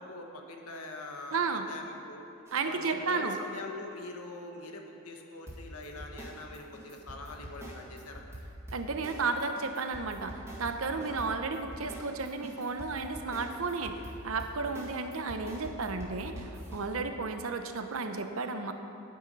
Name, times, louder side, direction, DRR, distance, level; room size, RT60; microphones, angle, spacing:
voice 1, 0.0-2.2 2.6-8.2 10.9-11.2 14.6-14.8 16.9-17.1, left 2 dB, 90° left, 2 dB, 1.2 m, -43 dB
voice 2, 1.3-1.7 2.5-3.4 8.7-18.7, right 4 dB, 70° right, 7 dB, 0.8 m, -33 dB
sound 1, 2.5-2.6 5.5-16.9, right 1 dB, 10° right, 2.1 m, -45 dB
10.0 x 9.4 x 5.4 m, 2.8 s
head